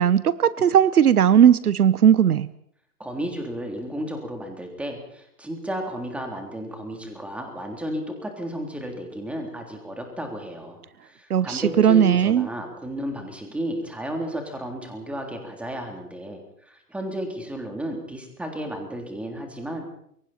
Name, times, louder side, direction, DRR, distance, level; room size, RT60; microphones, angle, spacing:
voice 1, 0.0-2.5 11.3-12.5, right 9 dB, 70° right, 17 dB, 1.0 m, -17 dB
voice 2, 3.0-19.8, equal, 5° right, 2 dB, 3.5 m, -33 dB
28.0 x 23.5 x 4.4 m, 0.71 s
hypercardioid pair, 135°, 46 cm